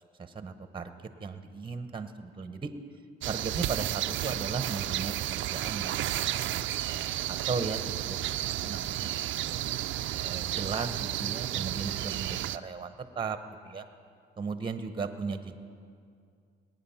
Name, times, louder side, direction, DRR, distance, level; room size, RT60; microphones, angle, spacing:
voice 1, 0.2-0.9 1.2-2.7 3.3-5.1 5.4-6.1 6.5-7.8 8.1-9.1 9.4-9.6 10.2-13.4 13.6-13.8 14.4-15.5, right 5 dB, 25° right, 9 dB, 0.9 m, -36 dB
sound 1, 3.2-12.6, right 13 dB, 75° right, 0.5 m, -32 dB
21.0 x 9.6 x 5.7 m, 2.3 s
cardioid pair, 90°, 20 cm